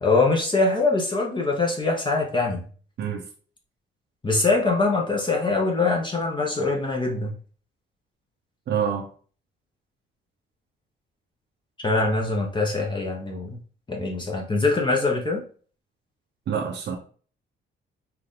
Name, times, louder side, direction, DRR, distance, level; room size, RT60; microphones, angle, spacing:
voice 1, 0.0-2.7 4.2-7.3 11.8-13.6 13.9-15.4, left 3 dB, 25° left, 1.1 m, -23 dB
voice 2, 8.7-9.1 16.5-17.0, right 8 dB, 60° right, 0.8 m, -26 dB
4.5 x 2.7 x 3.7 m
cardioid pair, 90°, 20 cm